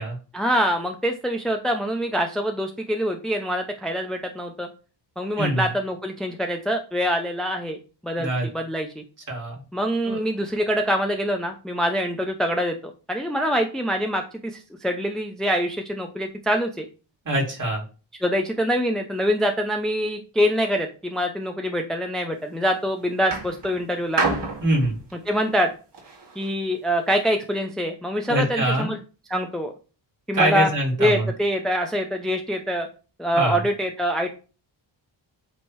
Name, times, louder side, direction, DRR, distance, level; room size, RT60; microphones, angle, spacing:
voice 1, 0.3-4.7 5.2-9.0 9.7-12.8 13.1-16.9 18.2-24.2 25.3-25.7 26.4-29.0 29.3-29.7 30.3-30.7 31.0-32.9 33.2-34.3, equal, ahead, 3 dB, 0.6 m, -25 dB
voice 2, 9.3-9.6 10.0-10.2 17.2-17.8 24.6-24.9 28.3-28.9 30.3-31.3 33.3-33.6, right 1 dB, 40° right, 0 dB, 2.6 m, -24 dB
sound 1, 22.3-22.7 23.3-26.5 27.3-27.4, right 3 dB, 65° right, 2.3 m, -30 dB
8.6 x 2.9 x 4.6 m, 0.35 s
wide cardioid pair, 150°, 45 cm